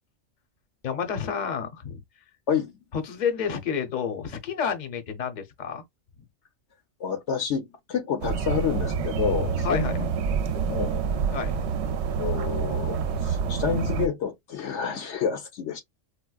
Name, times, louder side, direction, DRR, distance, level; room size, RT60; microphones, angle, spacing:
voice 1, 0.8-2.0 2.9-5.8 9.6-10.0 11.3-11.6, left 7 dB, 40° left, 0.8 m, -29 dB
voice 2, 7.0-10.1 10.6-11.0 12.2-15.8, left 7 dB, 70° left, 1.0 m, -29 dB
sound 1, 8.2-14.1, right 6 dB, 65° right, 0.8 m, -27 dB
4.4 x 2.0 x 2.3 m
omnidirectional pair, 1.3 m